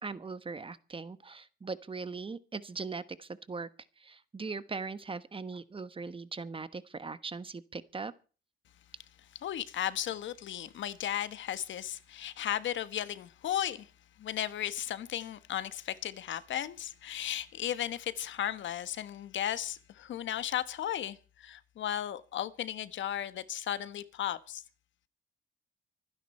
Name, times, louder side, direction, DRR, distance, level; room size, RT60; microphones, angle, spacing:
voice 1, 0.0-3.7 4.0-8.1, right 4 dB, 25° right, 1.2 m, -40 dB
voice 2, 9.4-13.9 14.2-24.6, left 11 dB, 70° left, 1.3 m, -35 dB
25.0 x 10.0 x 4.3 m
cardioid pair, 90°, 20 cm